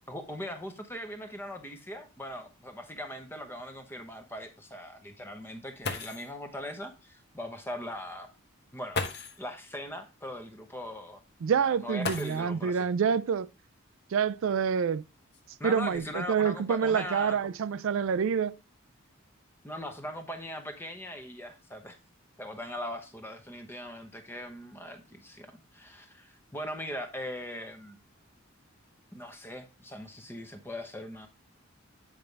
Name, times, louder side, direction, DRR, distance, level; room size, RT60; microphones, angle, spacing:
voice 1, 0.1-8.3 8.7-11.2 11.8-12.9 15.6-17.5 19.6-22.0 22.4-28.0 29.1-31.3, left 1 dB, 10° left, 0.9 m, -40 dB
sound 1, 5.8-6.4 7.7-7.8 8.9-9.5 12.0-12.7 14.1-14.2 14.9-16.4 17.1-17.5 17.8-18.2, left 4 dB, 50° left, 1.1 m, -38 dB
voice 2, 11.4-13.5 14.1-15.0 15.6-18.6, right 7 dB, 65° right, 0.4 m, -27 dB
8.9 x 5.3 x 3.3 m
head